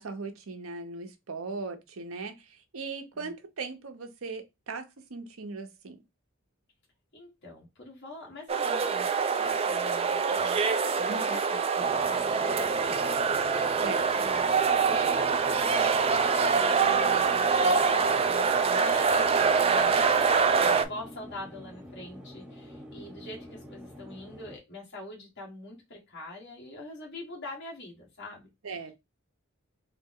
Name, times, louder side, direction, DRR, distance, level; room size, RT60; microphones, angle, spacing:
voice 1, 0.0-6.0 11.1-11.4 13.8-14.1 28.6-28.9, right 4 dB, 80° right, 0.7 m, -39 dB
voice 2, 7.1-13.2 14.1-14.6 14.8-28.5, left 1 dB, 60° left, 1.4 m, -44 dB
sound 1, 8.5-20.8, right 5 dB, 30° right, 0.3 m, -25 dB
sound 2, 11.8-24.6, left 1 dB, 5° right, 0.7 m, -46 dB
3.7 x 2.1 x 3.6 m
head